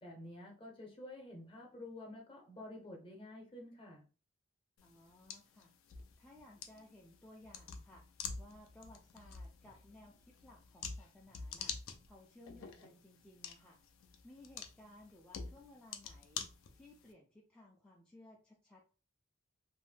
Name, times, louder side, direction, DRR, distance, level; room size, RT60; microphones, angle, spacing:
voice 1, 0.0-4.0, left 1 dB, 25° left, 1 dB, 0.7 m, -50 dB
sound 1, 4.8-17.1, left 6 dB, 70° left, 0.4 m, -48 dB
voice 2, 4.8-5.7 6.2-8.0 8.4-13.8 14.2-16.5 16.7-18.8, left 1 dB, 5° left, -3 dB, 0.3 m, -59 dB
2.6 x 2.1 x 3.2 m, 0.36 s
head